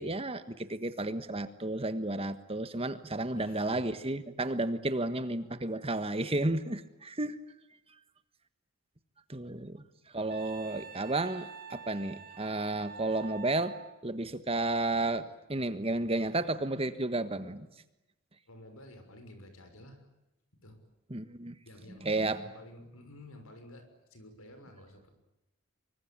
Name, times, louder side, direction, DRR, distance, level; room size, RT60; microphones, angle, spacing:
voice 1, 0.0-7.4 9.3-9.8 10.1-17.7 21.1-21.6 21.9-22.4, right 2 dB, 25° right, 12 dB, 1.4 m, -32 dB
voice 2, 3.3-3.9 18.5-20.1 20.6-20.8 21.6-25.1, left 1 dB, 75° left, 7 dB, 6.3 m, -51 dB
Wind instrument woodwind instrument, 10.3-13.9, right 6 dB, 40° right, 2.0 m, -47 dB
25.5 x 24.0 x 8.8 m, 0.95 s
head